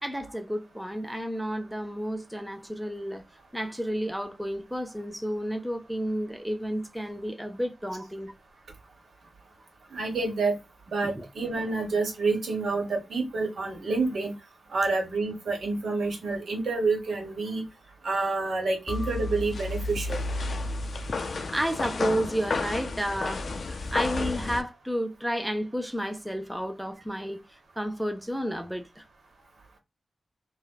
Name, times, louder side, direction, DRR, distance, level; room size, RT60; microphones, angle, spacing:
voice 1, 0.0-3.3 3.5-8.3 11.0-11.3 21.5-29.0, equal, 5° right, 0.4 m, -31 dB
voice 2, 9.9-10.6 10.9-14.3 14.7-17.6 18.0-20.2, right 3 dB, 80° right, 1.1 m, -28 dB
sound 1, 18.9-24.6, left 3 dB, 60° left, 0.4 m, -31 dB
3.3 x 2.1 x 2.2 m
wide cardioid pair, 110°, 0 cm